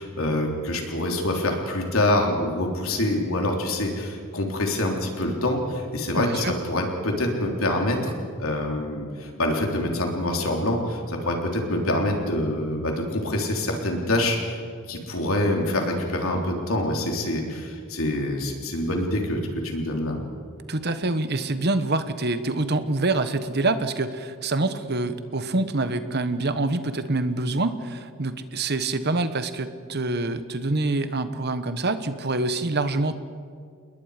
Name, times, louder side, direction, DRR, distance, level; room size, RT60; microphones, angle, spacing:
voice 1, 0.0-8.1 8.4-14.6 14.9-20.2, left 1 dB, 70° left, 1 dB, 3.6 m, -26 dB
voice 2, 6.1-6.5 20.7-33.1, right 2 dB, 50° right, 11 dB, 1.2 m, -26 dB
28.5 x 21.0 x 5.1 m, 2.2 s
head